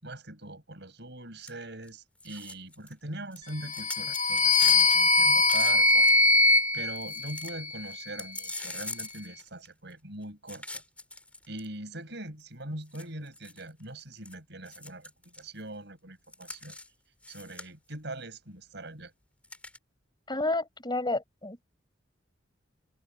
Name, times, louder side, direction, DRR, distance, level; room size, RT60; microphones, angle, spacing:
voice 1, 0.0-6.1 6.7-10.8 11.5-16.8 17.3-19.1, right 1 dB, 65° right, 6.9 m, -42 dB
sound 1, 1.4-1.5 1.8-1.9 2.2-2.9 3.3-6.3 6.7-6.8 7.0-7.5 7.9-9.9 10.5-11.7 12.4-12.5 12.9-14.3 14.7-15.5 16.3-16.9 17.2-17.9 19.4-19.8, left 2 dB, 5° left, 3.1 m, -41 dB
sound 2, 3.6-7.9, left 2 dB, 40° left, 1.6 m, -22 dB
voice 2, 20.3-21.6, left 2 dB, 25° left, 4.3 m, -30 dB
head